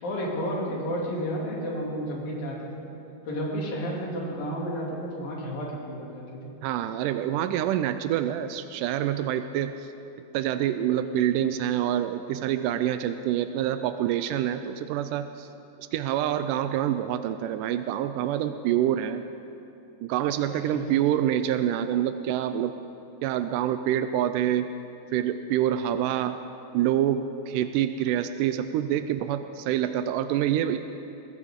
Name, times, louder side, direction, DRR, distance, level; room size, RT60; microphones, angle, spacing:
voice 1, 0.0-2.9 3.3-6.4 20.5-21.0, equal, 70° left, -3 dB, 4.5 m, -32 dB
voice 2, 6.6-9.7 10.3-15.5 15.9-19.2 20.0-22.7 23.2-24.7 25.1-26.4 26.7-30.8, right 11 dB, 85° right, 10 dB, 1.8 m, -26 dB
22.0 x 17.5 x 3.7 m, 2.8 s
omnidirectional pair, 4.3 m